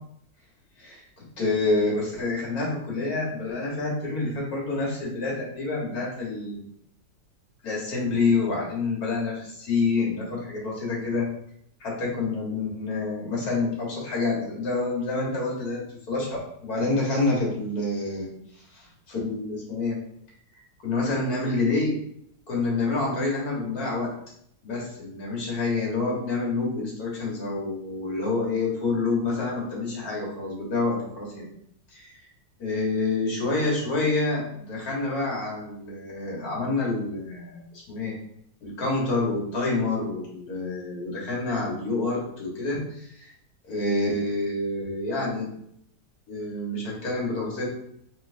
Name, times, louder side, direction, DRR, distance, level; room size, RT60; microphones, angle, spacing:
voice 1, 1.4-6.6 7.6-11.3 11.8-15.8 16.1-20.0 20.8-22.0 22.5-24.1 24.6-31.5 31.9-32.2 32.6-38.1 38.6-43.3 43.6-45.5 46.3-47.7, left 3 dB, 60° left, -4 dB, 1.9 m, -27 dB
4.4 x 3.4 x 2.6 m, 0.71 s
omnidirectional pair, 1.9 m